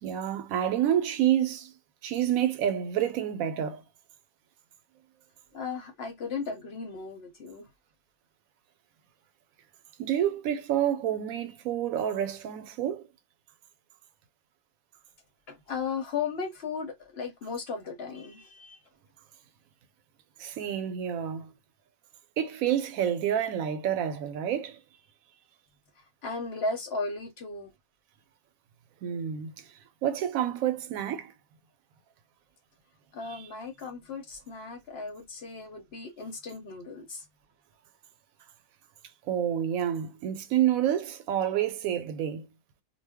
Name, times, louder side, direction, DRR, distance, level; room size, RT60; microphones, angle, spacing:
voice 1, 0.0-1.7 2.0-3.8 10.0-13.1 20.4-21.5 22.4-24.8 29.0-29.6 30.0-31.3 33.3-33.4 39.3-42.5, right 10 dB, 80° right, 1.0 m, -28 dB
voice 2, 5.5-7.6 15.5-18.8 26.0-27.7 33.1-37.2, left 4 dB, 55° left, 0.9 m, -36 dB
2.4 x 2.2 x 3.4 m
omnidirectional pair, 1.4 m